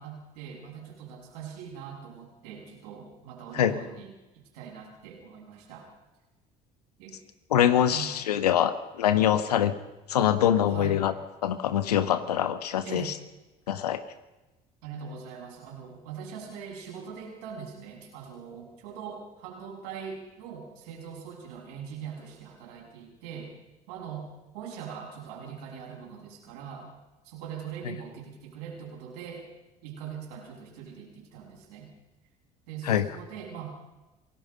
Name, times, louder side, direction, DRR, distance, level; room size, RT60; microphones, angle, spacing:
voice 1, 0.0-5.9 7.0-7.2 7.9-8.2 10.7-11.0 12.8-13.1 14.8-23.6 23.9-24.3 24.5-26.9 27.2-29.5 29.8-31.9 32.7-33.7, right 7 dB, 75° right, -1 dB, 6.8 m, -42 dB
voice 2, 7.5-9.7 10.1-11.1 11.4-13.1 13.7-14.0 32.8-33.0, left 10 dB, 90° left, 12 dB, 1.3 m, -24 dB
27.0 x 18.0 x 5.3 m, 1.1 s
hypercardioid pair, 60°, 20 cm